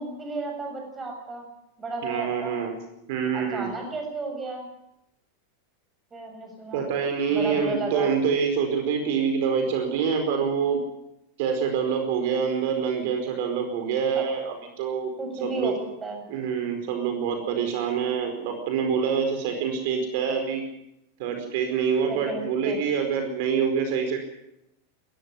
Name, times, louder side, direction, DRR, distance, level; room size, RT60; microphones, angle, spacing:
voice 1, 0.0-1.5 1.8-2.6 3.3-4.7 6.1-6.9 7.3-8.1 14.1-14.2 15.2-15.7 16.0-16.2 22.1-22.8, right 3 dB, 15° right, 3 dB, 7.0 m, -33 dB
voice 2, 2.0-2.8 3.1-3.7 6.7-10.8 11.4-15.1 15.4-15.7 16.3-20.6 21.2-24.2, right 6 dB, 60° right, 5 dB, 4.8 m, -26 dB
21.5 x 14.0 x 9.9 m, 0.84 s
supercardioid pair, 145°, 0 cm